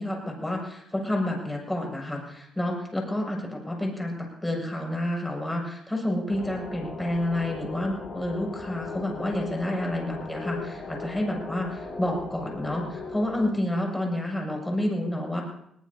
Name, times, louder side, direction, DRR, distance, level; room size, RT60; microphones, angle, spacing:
voice 1, 0.0-15.4, left 1 dB, 10° left, 0 dB, 6.6 m, -29 dB
sound 1, 6.3-13.5, left 4 dB, 50° left, 5.8 m, -38 dB
22.0 x 18.5 x 2.8 m, 0.72 s
cardioid pair, 90°, 0 cm